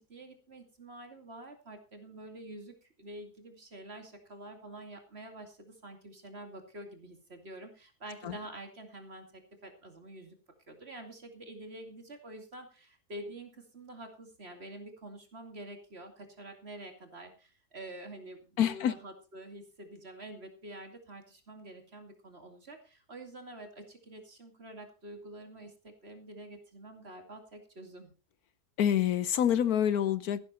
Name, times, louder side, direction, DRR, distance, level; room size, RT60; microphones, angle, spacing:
voice 1, 0.0-10.4 10.7-28.1, right 1 dB, 40° right, 5 dB, 2.8 m, -47 dB
voice 2, 18.6-18.9 28.8-30.4, left 10 dB, 75° left, 16 dB, 1.3 m, -27 dB
14.5 x 12.0 x 4.2 m, 0.33 s
omnidirectional pair, 1.7 m